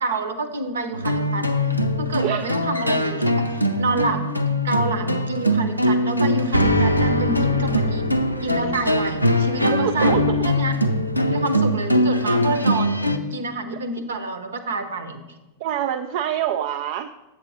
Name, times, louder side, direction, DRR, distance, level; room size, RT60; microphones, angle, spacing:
voice 1, 0.0-1.5 2.0-3.3 3.8-4.2 4.6-8.0 8.4-10.2 10.4-10.7 11.3-13.0 13.3-15.2, right 2 dB, 65° right, 9 dB, 0.9 m, -27 dB
sound 1, 0.9-13.2, equal, 90° left, 0.5 m, -21 dB
voice 2, 9.7-10.4 13.7-13.8 15.6-17.1, right 11 dB, 50° right, 7 dB, 0.3 m, -26 dB
8.1 x 7.3 x 4.1 m, 1.1 s
figure-of-eight pair, 90°, 0 cm